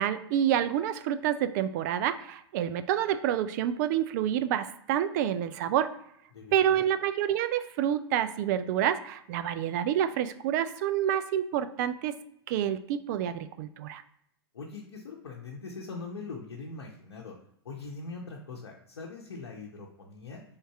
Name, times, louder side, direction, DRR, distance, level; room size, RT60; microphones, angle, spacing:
voice 1, 0.0-5.9 6.5-12.2 12.5-14.0, right 10 dB, 45° right, 11 dB, 0.4 m, -28 dB
voice 2, 6.3-6.8 14.5-17.3 17.6-20.4, left 4 dB, 75° left, -1 dB, 0.8 m, -42 dB
3.6 x 2.6 x 4.5 m, 0.73 s
hypercardioid pair, 105°, 13 cm